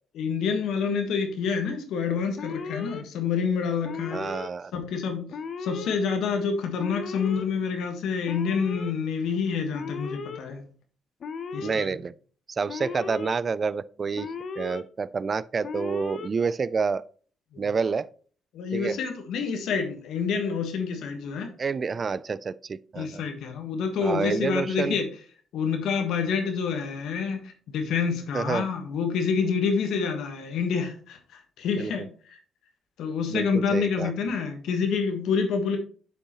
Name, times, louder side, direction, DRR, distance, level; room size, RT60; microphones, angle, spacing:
voice 1, 0.1-4.2 4.7-5.3 5.6-10.6 11.5-12.0 17.5-17.7 18.5-21.5 23.0-25.1 25.5-32.0 32.3-32.4 33.0-35.8, left 5 dB, 80° left, 1.3 m, -27 dB
Alarm, 2.4-3.0 3.8-4.5 5.3-6.0 6.8-7.4 8.3-8.9 9.7-10.4 11.2-11.9 12.7-13.3 14.2-14.8 15.6-16.3, left 5 dB, 55° left, 0.7 m, -36 dB
voice 2, 4.1-4.7 11.6-12.1 12.6-14.3 14.6-17.0 17.6-18.1 18.7-19.0 21.6-23.2 24.0-25.0 28.3-28.7 31.8-31.9 33.3-34.1, right 5 dB, 40° right, 0.3 m, -28 dB
8.4 x 5.4 x 3.0 m
cardioid pair, 90°, 0 cm